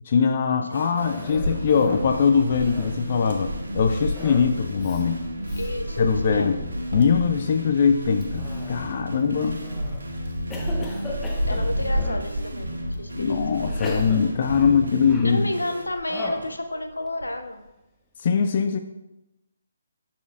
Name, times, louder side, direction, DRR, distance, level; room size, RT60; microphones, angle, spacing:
voice 1, 0.1-5.2 6.0-6.6 6.9-9.6 13.2-15.4 18.2-18.8, left 6 dB, 45° left, 6 dB, 0.4 m, -22 dB
sound 1, 0.7-15.8, right 1 dB, 85° right, 1.4 m, -35 dB
Cough, 1.0-2.1 2.5-3.1 4.2-4.5 4.8-5.0 5.5-5.7 6.2-6.7 8.2-9.0 9.6-10.0 10.5-12.3 12.9-13.0 13.7-15.5 16.1-16.5, left 2 dB, 15° left, 1.1 m, -37 dB
Wind, 1.3-15.4 15.9-17.4, equal, 60° right, 1.8 m, -32 dB
voice 2, 5.5-6.6 11.5-13.4 15.2-17.6, left 1 dB, 90° left, 7 dB, 0.7 m, -31 dB
11.5 x 4.3 x 2.4 m, 0.96 s
figure-of-eight pair, 145°, 0 cm